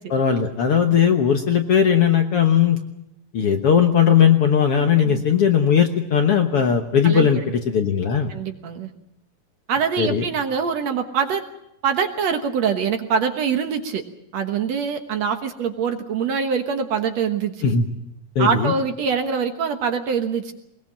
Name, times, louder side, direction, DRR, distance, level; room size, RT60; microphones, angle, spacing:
voice 1, 0.1-2.8 3.3-8.3 10.0-10.2 17.6-17.9 18.4-18.7, left 7 dB, 60° left, 5 dB, 1.7 m, -18 dB
voice 2, 8.3-8.9 9.7-11.4 11.8-14.0 14.3-17.5 18.4-20.5, right 6 dB, 60° right, 6 dB, 2.2 m, -24 dB
21.5 x 21.0 x 7.4 m, 0.82 s
omnidirectional pair, 3.8 m